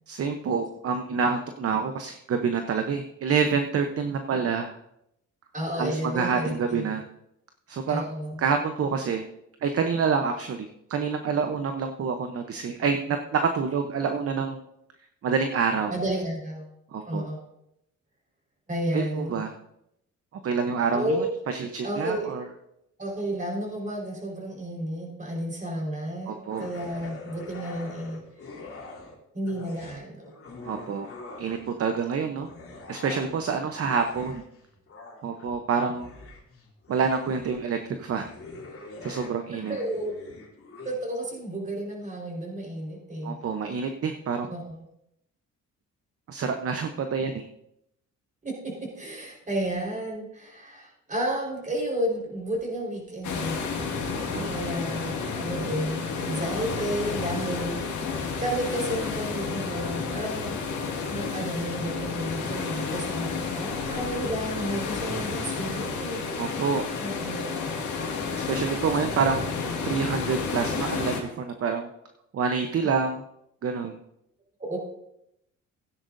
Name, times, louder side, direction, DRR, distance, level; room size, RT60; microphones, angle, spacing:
voice 1, 0.1-4.8 5.8-7.0 7.7-8.0 8.4-9.2 9.6-14.6 15.2-15.9 16.9-17.3 18.9-19.5 20.4-22.5 26.3-26.7 30.6-31.1 31.4-32.5 32.9-34.4 35.2-36.1 36.9-38.3 39.0-39.8 43.2-44.5 46.3-47.5 54.1-54.5 66.4-66.8 68.4-69.5 69.8-71.9 72.3-73.2 73.6-74.0, right 5 dB, 50° right, 6 dB, 0.9 m, -27 dB
voice 2, 5.5-6.9 7.9-8.4 15.9-16.7 17.0-17.4 18.7-19.4 20.9-21.3 21.8-22.3 23.0-28.2 29.3-30.2 39.7-40.2 40.8-43.4 44.4-44.8 48.4-53.7 54.4-58.0 58.4-60.6 61.1-66.2 67.0-67.5 74.6-74.8, right 1 dB, 25° right, -1 dB, 4.5 m, -32 dB
sound 1, 26.5-29.2 29.5-31.8 32.4-41.0, left 3 dB, 50° left, 2.9 m, -44 dB
sound 2, 53.2-71.2, left 5 dB, 75° left, 2.1 m, -31 dB
15.5 x 10.0 x 2.6 m, 0.80 s
cardioid pair, 90°, 30 cm